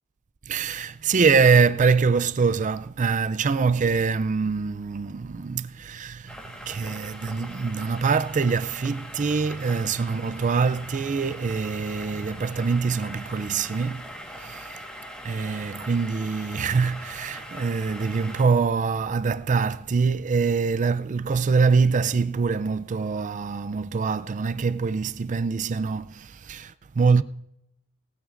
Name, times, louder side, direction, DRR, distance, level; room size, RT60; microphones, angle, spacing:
voice 1, 0.4-14.1 14.4-14.7 15.2-27.2, right 5 dB, 35° right, 0.4 m, -24 dB
sound 1, 6.3-18.4, equal, 5° left, 1.4 m, -41 dB
19.0 x 14.0 x 2.5 m
head